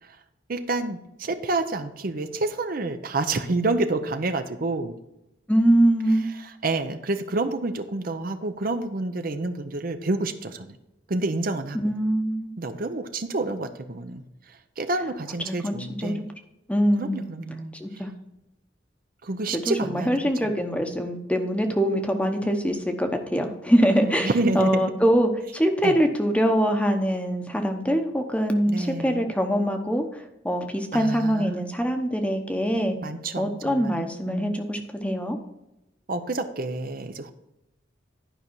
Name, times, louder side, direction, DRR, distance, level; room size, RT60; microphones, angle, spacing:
voice 1, 0.5-5.0 6.4-10.8 11.1-11.9 12.6-16.2 17.0-18.0 19.2-20.5 24.0-24.8 25.8-26.0 28.7-29.2 30.9-31.7 33.0-34.5 36.1-37.3, right 2 dB, 50° right, 8 dB, 0.7 m, -29 dB
voice 2, 5.5-6.3 11.7-12.5 15.5-16.1 16.7-17.2 17.8-18.1 19.5-24.3 24.5-33.0 33.4-35.4, equal, 5° left, 5 dB, 0.9 m, -23 dB
11.0 x 5.4 x 4.5 m, 0.92 s
head